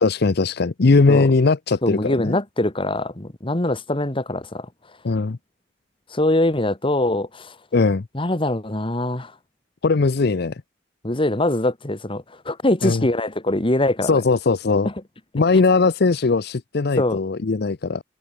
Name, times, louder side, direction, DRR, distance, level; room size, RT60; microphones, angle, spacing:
voice 1, 0.0-2.4 5.0-5.4 7.7-8.1 9.8-10.6 12.8-13.0 14.0-14.9 15.3-18.0, left 3 dB, 55° left, 0.6 m, -19 dB
voice 2, 1.8-4.7 6.1-7.5 8.1-9.3 11.0-14.2 17.0-17.2, left 1 dB, 30° left, 1.7 m, -23 dB
head